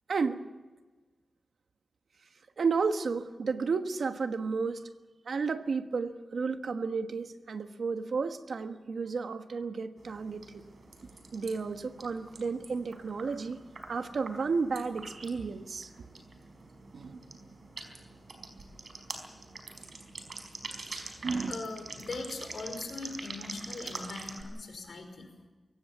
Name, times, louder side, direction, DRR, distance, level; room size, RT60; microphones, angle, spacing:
voice 1, 0.1-0.4 2.6-4.8 5.3-10.4 11.3-13.6 13.9-15.9 16.9-17.2 21.2-21.5, right 4 dB, 75° right, 8 dB, 1.3 m, -32 dB
sound 1, 10.0-24.4, right 3 dB, 60° right, 4.8 m, -45 dB
voice 2, 21.5-25.3, left 3 dB, 70° left, 4 dB, 5.4 m, -40 dB
23.0 x 17.5 x 7.3 m, 1.2 s
wide cardioid pair, 95°, 0 cm